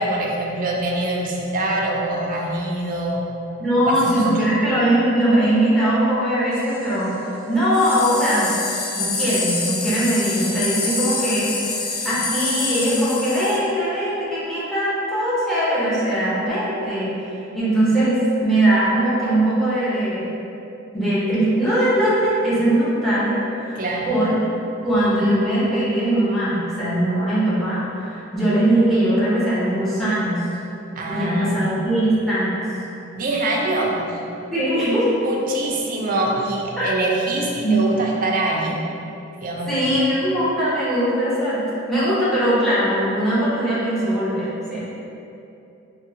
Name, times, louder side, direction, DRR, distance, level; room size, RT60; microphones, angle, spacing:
voice 1, 0.0-3.2 3.9-4.3 23.8-24.1 31.0-31.7 33.1-34.0 35.2-38.8 39.4-39.7, right 2 dB, 45° right, -2 dB, 0.4 m, -24 dB
voice 2, 3.6-8.5 8.9-20.3 20.9-23.8 24.1-24.4 24.8-30.4 31.1-32.7 34.5-35.2 36.8-36.9 37.6-37.8 39.7-44.8, right 1 dB, ahead, -10 dB, 0.9 m, -20 dB
sound 1, 6.5-6.9 7.7-13.6, left 3 dB, 75° left, 0.4 m, -26 dB
3.5 x 2.1 x 2.7 m, 2.7 s
head